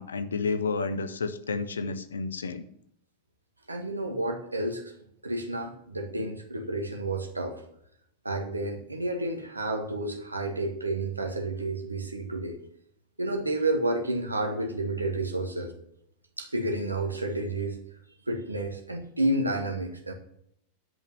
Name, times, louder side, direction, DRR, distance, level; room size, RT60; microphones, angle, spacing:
voice 1, 0.0-2.6, left 4 dB, 70° left, 12 dB, 0.9 m, -31 dB
voice 2, 3.7-4.9 5.2-7.6 8.2-12.6 13.2-15.7 16.4-17.8 18.3-20.1, right 2 dB, 80° right, 3 dB, 1.7 m, -30 dB
10.0 x 5.5 x 7.5 m, 0.72 s
figure-of-eight pair, 90°, 0 cm